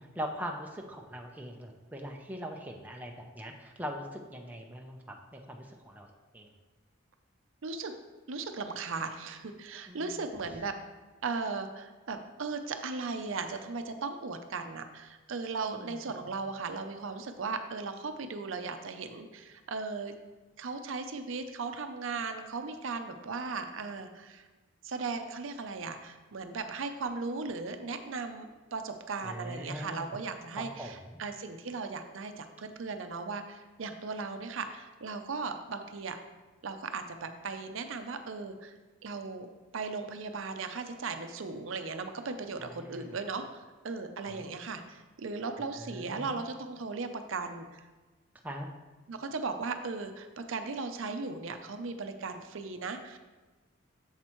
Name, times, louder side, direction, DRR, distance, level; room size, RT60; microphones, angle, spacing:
voice 1, 0.0-6.1 6.3-6.5 9.9-10.3 15.7-16.1 29.2-30.2 30.6-31.2 42.6-43.2 44.2-44.4 45.8-46.5 48.4-48.7, equal, 10° right, 1 dB, 0.5 m, -41 dB
voice 2, 7.6-7.9 8.3-10.7 11.2-20.1 20.6-24.5 24.8-36.2 36.6-38.7 39.0-47.8 49.1-53.2, right 4 dB, 70° right, 7 dB, 0.6 m, -37 dB
7.6 x 7.3 x 3.0 m, 1.3 s
head